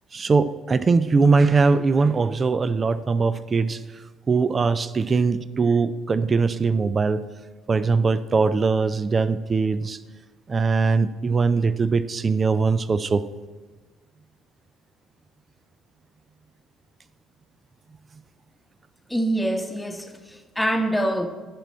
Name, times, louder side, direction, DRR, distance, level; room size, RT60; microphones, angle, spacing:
voice 1, 0.1-7.2 7.7-10.0 10.5-13.2, right 4 dB, 30° right, 15 dB, 0.4 m, -21 dB
voice 2, 19.1-21.3, right 1 dB, 5° left, 5 dB, 1.0 m, -25 dB
13.0 x 6.1 x 4.3 m, 1.3 s
figure-of-eight pair, 50°, 0 cm